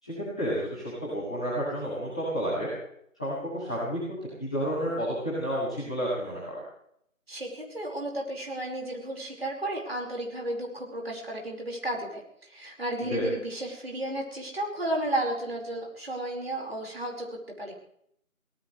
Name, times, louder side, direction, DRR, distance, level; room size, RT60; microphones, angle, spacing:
voice 1, 0.0-2.7 3.2-4.0 4.4-6.6 13.0-13.2, equal, 5° left, -15 dB, 2.4 m, -31 dB
voice 2, 7.3-12.2 12.5-17.3 17.6-17.8, right 1 dB, 45° right, -1 dB, 5.1 m, -33 dB
24.0 x 18.0 x 3.3 m, 0.70 s
figure-of-eight pair, 170°, 42 cm